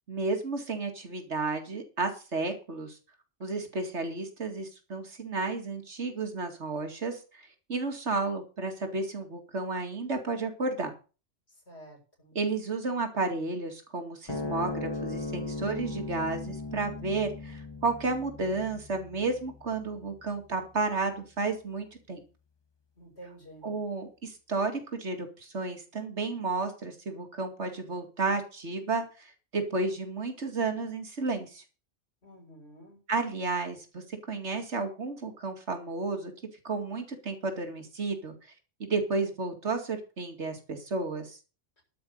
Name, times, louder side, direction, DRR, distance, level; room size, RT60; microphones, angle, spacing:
voice 1, 0.1-3.0 3.4-10.9 12.3-22.2 23.6-31.6 33.1-36.3 36.6-38.3 38.8-41.4, right 3 dB, 70° right, 5 dB, 2.5 m, -32 dB
voice 2, 11.7-12.4 23.0-23.7 32.2-33.0, right 1 dB, 65° left, 1 dB, 6.1 m, -50 dB
sound 1, 14.3-20.9, left 3 dB, 20° left, 1.4 m, -38 dB
12.0 x 5.3 x 8.6 m, 0.34 s
omnidirectional pair, 1.2 m